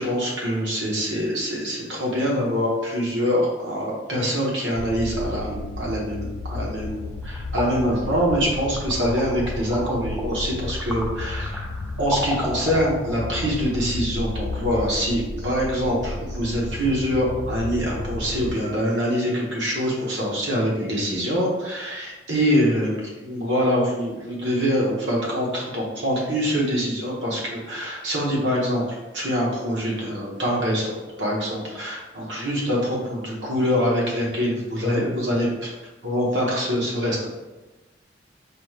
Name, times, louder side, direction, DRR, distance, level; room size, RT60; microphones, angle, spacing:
voice 1, 0.0-11.5 12.0-30.9 31.2-35.7 36.0-37.3, equal, 80° right, -3 dB, 1.1 m, -24 dB
sound 1, 4.8-18.6, left 2 dB, 60° left, 0.4 m, -32 dB
sound 2, 6.9-13.5, equal, 5° right, 0.4 m, -34 dB
4.9 x 3.2 x 2.4 m, 1.1 s
head